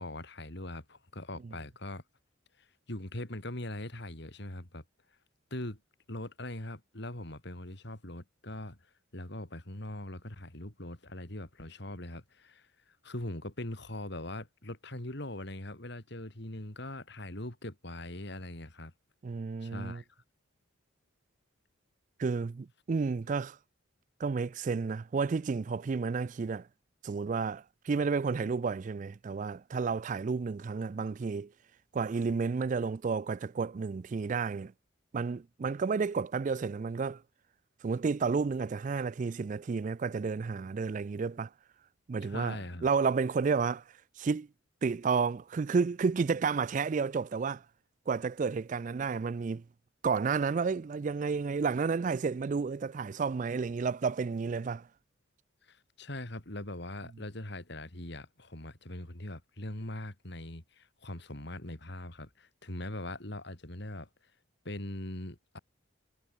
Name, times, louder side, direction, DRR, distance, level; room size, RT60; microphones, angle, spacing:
voice 1, 0.0-2.0 2.6-4.8 5.5-5.8 6.1-8.8 9.1-18.9 19.6-20.0 42.2-42.9 55.6-64.1 64.6-65.6, left 1 dB, 55° left, 3.1 m, -41 dB
voice 2, 19.2-20.0 22.2-23.6 24.2-26.7 27.0-31.5 31.9-34.7 35.1-37.2 37.8-41.5 42.1-43.8 44.2-44.5 44.8-47.6 48.1-49.6 50.0-54.9, right 5 dB, 40° right, 0.3 m, -31 dB
head